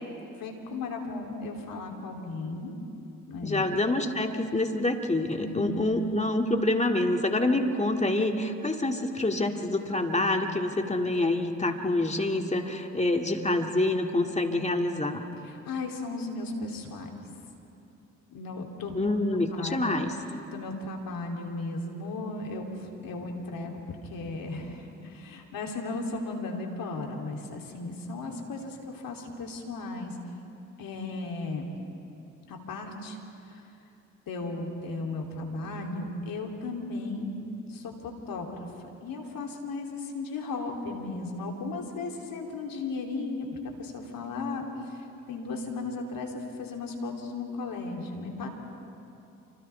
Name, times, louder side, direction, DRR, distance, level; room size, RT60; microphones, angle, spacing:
voice 1, 0.4-2.8 3.3-3.8 5.3-5.8 15.4-17.1 18.3-19.1 19.6-20.0 20.5-30.2 30.8-31.7 32.5-33.2 33.5-33.6 34.3-37.4 37.7-38.7 39.0-48.5, left 3 dB, 70° left, 1 dB, 3.2 m, -35 dB
voice 2, 3.4-15.2 18.9-20.1, left 2 dB, 20° left, 3 dB, 2.4 m, -27 dB
29.5 x 26.0 x 3.5 m, 2.8 s
hypercardioid pair, 45°, 36 cm